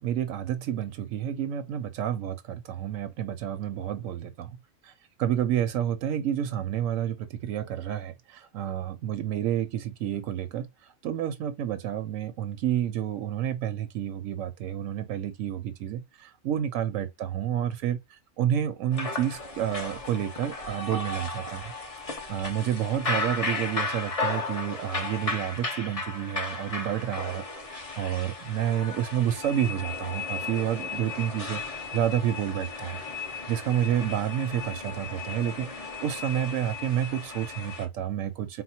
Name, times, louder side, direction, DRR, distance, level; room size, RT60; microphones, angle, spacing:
voice 1, 0.0-4.6 4.8-4.9 5.2-10.7 11.0-21.7 22.3-33.0 33.3-38.6, right 10 dB, 85° right, 1.0 m, -30 dB
sound 1, 18.9-37.9, left 3 dB, 30° left, 0.9 m, -35 dB
4.3 x 2.1 x 4.2 m
omnidirectional pair, 1.3 m